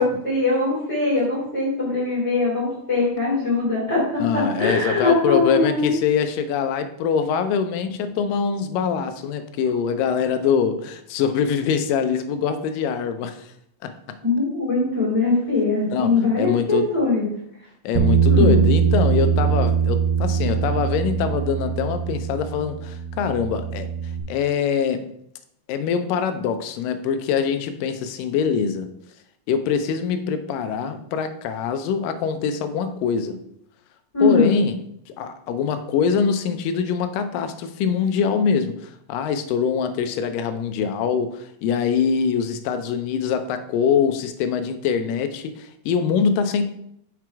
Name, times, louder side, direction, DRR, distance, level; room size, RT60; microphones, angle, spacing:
voice 1, 0.0-5.9 14.2-17.2 18.3-18.6 34.1-34.5, left 3 dB, 10° left, -8 dB, 2.7 m, -21 dB
voice 2, 4.2-13.5 13.8-13.9 15.9-16.9 17.8-23.9 24.3-25.1 25.7-28.9 29.5-33.4 34.2-34.8 35.2-46.6, left 6 dB, 80° left, 8 dB, 2.2 m, -23 dB
Bass guitar, 18.0-24.2, right 7 dB, 90° right, 2.8 m, -21 dB
6.0 x 5.9 x 4.6 m, 0.72 s
omnidirectional pair, 4.2 m